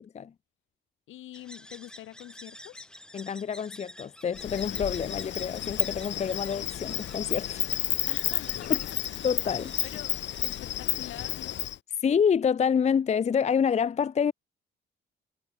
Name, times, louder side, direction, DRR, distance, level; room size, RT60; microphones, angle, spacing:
voice 1, 1.1-2.9 8.1-9.0 9.8-11.7, left 14 dB, 85° left, 3.5 m, -45 dB
sound 1, 1.3-11.5, left 1 dB, 5° left, 2.0 m, -50 dB
voice 2, 3.1-7.7 8.7-8.8 9.2-9.8 12.0-14.3, left 7 dB, 35° left, 0.6 m, -27 dB
Insect, 4.4-11.8, left 12 dB, 65° left, 0.9 m, -31 dB
cardioid pair, 90°, 20 cm